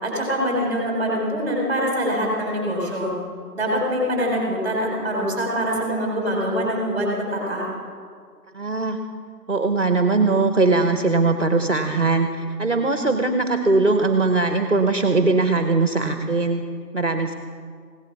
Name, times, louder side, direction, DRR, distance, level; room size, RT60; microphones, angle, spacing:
voice 1, 0.0-3.1 3.5-7.7, equal, 10° right, -4 dB, 3.8 m, -24 dB
voice 2, 8.5-9.0 9.5-16.6 16.9-17.3, right 3 dB, 45° right, 6 dB, 0.9 m, -20 dB
16.5 x 11.5 x 4.6 m, 2.1 s
figure-of-eight pair, 165°, 49 cm